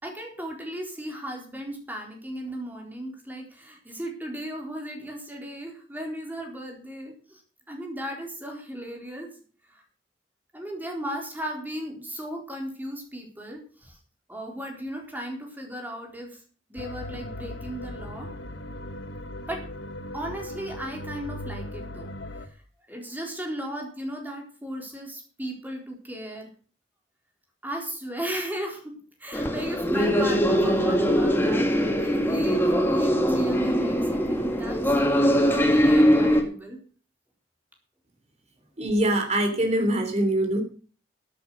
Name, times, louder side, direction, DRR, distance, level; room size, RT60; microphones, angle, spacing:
voice 1, 0.0-7.4 7.7-9.3 10.5-14.0 14.3-16.4 16.7-18.3 19.5-19.6 20.1-22.1 22.4-22.5 22.9-26.5 27.6-28.9 29.2-36.8, equal, 10° right, 1 dB, 4.1 m, -36 dB
sound 1, 16.8-22.5, left 1 dB, 70° left, 1.3 m, -38 dB
sound 2, 29.3-36.4, equal, 15° left, 2.2 m, -22 dB
voice 2, 38.8-40.6, right 1 dB, 40° right, 5 dB, 3.3 m, -23 dB
14.5 x 8.4 x 6.3 m, 0.41 s
head